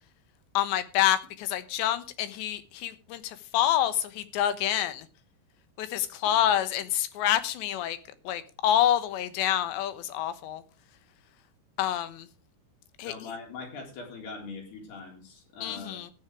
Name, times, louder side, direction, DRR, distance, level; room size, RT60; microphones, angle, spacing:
voice 1, 0.5-5.1 5.8-8.0 8.2-10.6 11.8-12.3 13.0-13.3 15.6-16.1, left 11 dB, 85° left, 3.4 m, -27 dB
voice 2, 13.0-16.0, left 4 dB, 65° left, 5.9 m, -42 dB
14.0 x 10.0 x 4.8 m
omnidirectional pair, 4.9 m